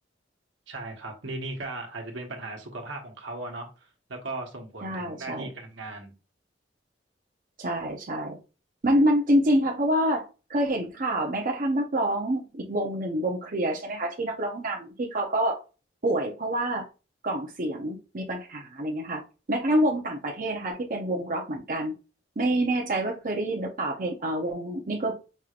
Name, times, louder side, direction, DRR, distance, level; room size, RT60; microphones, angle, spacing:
voice 1, 0.7-6.1, right 2 dB, 80° right, 2 dB, 1.2 m, -37 dB
voice 2, 4.8-5.5 7.6-8.4 8.8-15.6 16.0-16.9 17.2-19.2 19.5-21.9 22.4-25.1, right 1 dB, 45° right, 0 dB, 0.8 m, -27 dB
5.4 x 3.1 x 2.4 m, 0.31 s
head